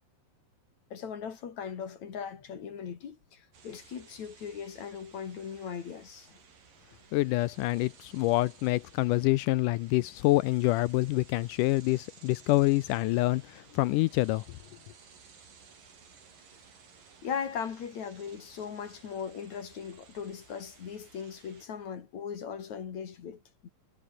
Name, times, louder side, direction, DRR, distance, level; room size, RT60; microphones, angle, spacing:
voice 1, 0.9-6.4 17.2-23.7, left 7 dB, 50° left, 3.4 m, -39 dB
sound 1, 3.5-21.7, right 6 dB, 65° right, 6.2 m, -57 dB
voice 2, 7.1-14.4, left 19 dB, 80° left, 1.9 m, -26 dB
omnidirectional pair, 4.3 m